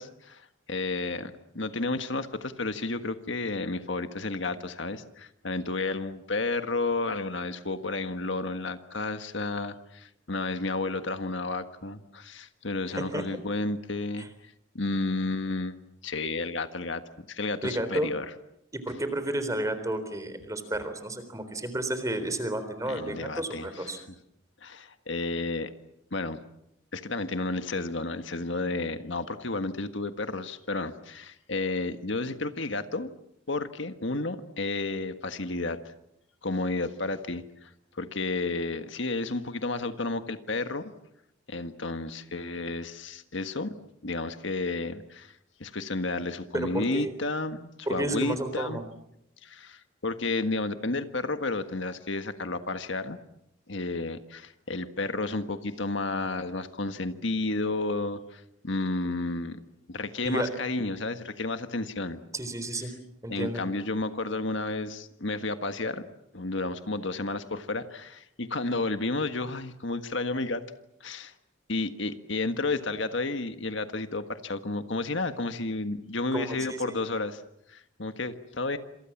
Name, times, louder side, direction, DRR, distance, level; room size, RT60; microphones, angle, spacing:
voice 1, 0.0-14.3 14.7-15.8 16.0-18.2 22.9-24.0 24.6-25.7 26.1-26.4 26.9-33.1 33.5-35.9 36.4-40.9 41.5-43.7 44.0-45.3 45.6-48.8 49.4-53.2 53.7-59.6 59.9-62.2 63.3-66.1 66.3-70.6 71.0-71.3 71.7-77.4 77.7-78.8, left 2 dB, 65° left, 9 dB, 1.6 m, -32 dB
voice 2, 12.9-13.3 14.2-14.3 17.6-18.1 18.7-24.0 46.5-47.1 47.9-48.8 60.2-60.5 62.3-62.9 63.2-63.6 76.3-77.0, right 1 dB, 15° right, 10 dB, 3.8 m, -31 dB
28.0 x 27.0 x 7.3 m, 0.79 s
head